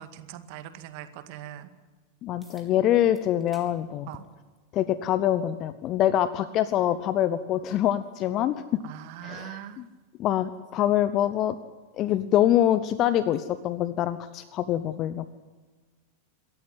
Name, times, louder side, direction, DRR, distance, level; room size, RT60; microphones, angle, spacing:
voice 1, 0.0-1.7 4.1-4.3 8.8-9.8, right 11 dB, 45° right, 10 dB, 2.1 m, -41 dB
voice 2, 2.2-4.1 4.7-8.6 9.2-9.9 10.2-11.6 11.9-15.3, left 12 dB, 35° left, 14 dB, 0.9 m, -25 dB
sound 1, 2.4-2.7 3.1-3.7 4.1-4.3 5.3-5.4 10.4-10.5, equal, 5° left, 4.7 m, -55 dB
27.5 x 14.0 x 9.2 m, 1.3 s
figure-of-eight pair, 90°, 0 cm